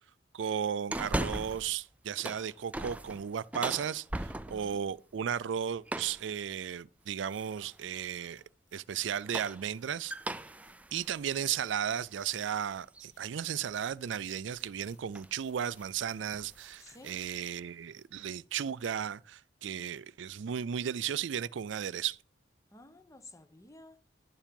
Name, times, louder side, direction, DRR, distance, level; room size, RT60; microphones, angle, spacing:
voice 1, 0.3-8.4 8.7-10.1 10.9-22.2, right 8 dB, 80° right, 0.4 m, -35 dB
sound 1, 0.9-1.7 2.1-4.8 5.9-6.3 7.3-7.8 9.0-12.5 12.9-13.0 14.6-14.8 15.1-15.4 15.7-16.0 16.3-17.3, right 1 dB, 10° right, 0.4 m, -39 dB
voice 2, 4.3-4.9 16.8-17.2 22.7-24.0, left 2 dB, 15° left, 0.9 m, -53 dB
sound 2, 7.6-9.6 10.2-11.5 11.9-12.7 13.1-13.9 14.2-15.0 15.4-16.2 16.6-17.1 17.5-17.6 17.9-18.1, left 5 dB, 80° left, 2.8 m, -68 dB
11.5 x 7.3 x 5.3 m
head